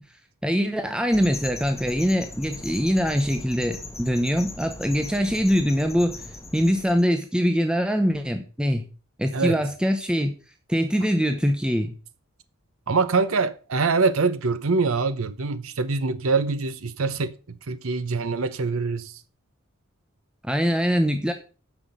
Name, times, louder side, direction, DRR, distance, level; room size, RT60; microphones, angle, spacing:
voice 1, 0.4-6.2 6.5-8.8 9.2-10.3 10.7-11.9 20.5-21.3, equal, 5° right, 0.9 m, -23 dB
sound 1, 1.1-7.0, left 2 dB, 15° left, 1.4 m, -39 dB
voice 2, 12.9-19.2, right 4 dB, 75° right, 0.7 m, -24 dB
9.9 x 5.9 x 6.7 m
head